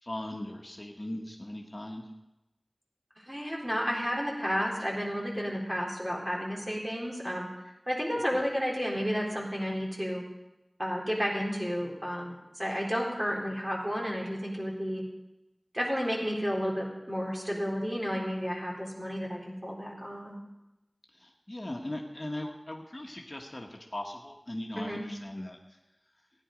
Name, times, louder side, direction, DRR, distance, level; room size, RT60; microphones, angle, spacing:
voice 1, 0.0-2.1 21.1-25.8, left 1 dB, 45° left, 1 dB, 1.4 m, -39 dB
voice 2, 3.2-7.5 7.9-10.2 10.8-15.0 15.7-20.4 24.8-25.0, equal, 20° right, -3 dB, 3.6 m, -32 dB
15.5 x 10.0 x 5.1 m, 0.96 s
wide cardioid pair, 45°, 0 cm